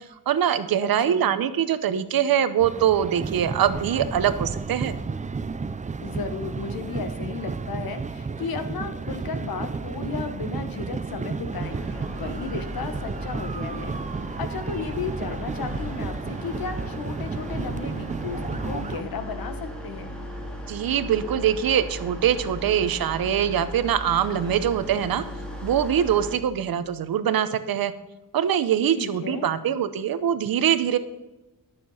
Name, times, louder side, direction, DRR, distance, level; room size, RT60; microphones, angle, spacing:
voice 1, 0.0-4.9 20.7-25.2 25.6-27.9 28.3-31.0, right 9 dB, 85° right, 12 dB, 0.9 m, -23 dB
voice 2, 0.8-1.4 6.0-14.0 14.3-20.2 29.0-29.5, left 5 dB, 90° left, 8 dB, 1.3 m, -34 dB
sound 1, 2.6-19.0, right 4 dB, 20° right, 0.5 m, -32 dB
sound 2, 11.5-26.4, equal, 5° left, 2.2 m, -37 dB
12.0 x 6.9 x 5.6 m, 1.0 s
wide cardioid pair, 120°, 35 cm